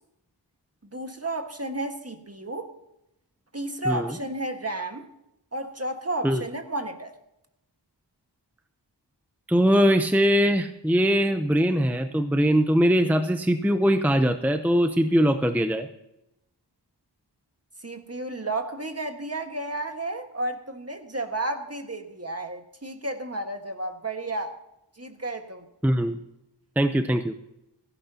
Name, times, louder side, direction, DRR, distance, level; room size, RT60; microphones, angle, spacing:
voice 1, 0.8-2.7 3.5-5.1 5.5-7.2 17.8-24.6 25.0-25.7, right 2 dB, 35° right, 5 dB, 1.6 m, -32 dB
voice 2, 3.8-4.2 6.2-6.4 9.5-15.9 25.8-26.2 26.8-27.3, equal, 5° right, 8 dB, 0.7 m, -21 dB
17.0 x 15.5 x 2.9 m, 0.86 s
wide cardioid pair, 45°, 43 cm